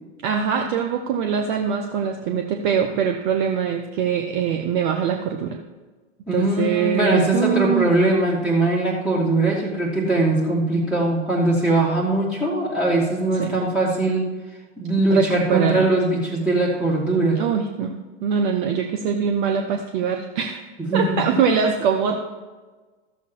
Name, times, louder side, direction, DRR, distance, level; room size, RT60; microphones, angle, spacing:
voice 1, 0.2-5.6 6.3-7.9 13.4-13.5 15.1-15.9 17.4-17.9 18.2-20.6 20.9-22.3, right 7 dB, 40° right, 4 dB, 0.9 m, -23 dB
voice 2, 6.3-14.3 14.8-17.4 20.8-21.4, right 2 dB, 5° right, -7 dB, 2.2 m, -21 dB
13.0 x 7.2 x 4.6 m, 1.3 s
figure-of-eight pair, 100°, 36 cm